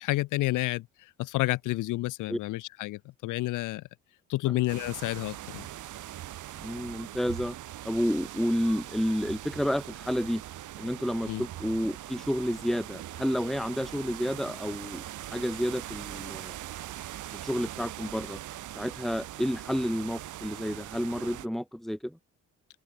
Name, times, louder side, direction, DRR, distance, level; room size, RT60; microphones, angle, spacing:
voice 1, 0.0-3.8 4.3-5.7 11.3-11.4, left 18 dB, 85° left, 0.7 m, -30 dB
sound 1, 4.7-21.5, right 13 dB, 80° right, 5.7 m, -41 dB
voice 2, 6.6-7.6 7.8-10.4 10.8-15.0 15.3-16.6 17.4-18.4 18.8-22.2, equal, ahead, 1.8 m, -30 dB
open air
cardioid pair, 90°, 30 cm